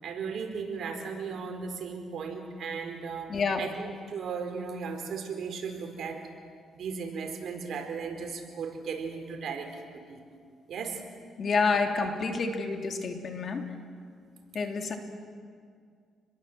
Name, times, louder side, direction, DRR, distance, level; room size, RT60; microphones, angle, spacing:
voice 1, 0.0-3.3 3.6-6.2 6.7-9.8 10.1-10.2 10.7-11.0 11.7-11.8, right 5 dB, 65° right, 4 dB, 4.5 m, -36 dB
voice 2, 3.3-3.6 11.4-13.7 14.5-15.0, left 4 dB, 50° left, 4 dB, 3.2 m, -28 dB
29.0 x 21.5 x 7.9 m, 2.2 s
cardioid pair, 90°, 0 cm